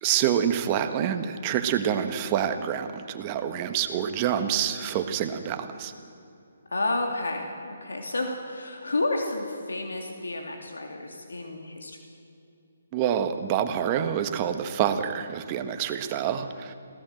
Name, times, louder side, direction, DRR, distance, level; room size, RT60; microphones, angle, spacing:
voice 1, 0.0-5.9 12.9-16.7, right 9 dB, 25° right, 8 dB, 1.4 m, -27 dB
voice 2, 6.7-12.0, left 2 dB, 90° left, 3 dB, 2.9 m, -31 dB
22.5 x 16.5 x 7.8 m, 2.7 s
hypercardioid pair, 155°, 0 cm